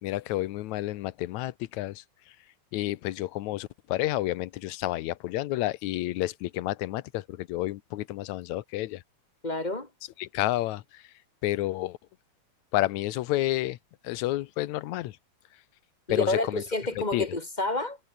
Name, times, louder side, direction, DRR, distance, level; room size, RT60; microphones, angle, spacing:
voice 1, 0.0-2.4 2.7-9.0 10.2-11.1 11.4-12.0 12.7-13.8 14.0-15.2 16.1-16.6 17.0-17.3, left 16 dB, 80° left, 2.1 m, -30 dB
voice 2, 9.4-9.9 16.1-18.0, left 2 dB, 15° left, 3.0 m, -29 dB
omnidirectional pair, 3.4 m